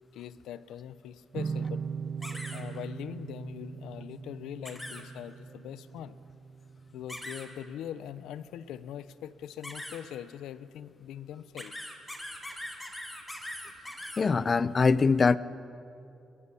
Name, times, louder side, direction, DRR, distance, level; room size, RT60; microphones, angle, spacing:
voice 1, 0.1-1.8 2.5-6.2 6.9-11.7, left 10 dB, 90° left, 0.8 m, -42 dB
sound 1, 1.3-8.5, right 5 dB, 50° right, 0.8 m, -40 dB
sound 2, 2.2-2.6 4.6-5.0 7.1-7.5 9.6-10.0 11.6-14.2, left 1 dB, 10° left, 4.1 m, -41 dB
voice 2, 14.2-15.4, left 4 dB, 35° left, 0.7 m, -23 dB
22.5 x 20.0 x 8.5 m
cardioid pair, 85°, 0 cm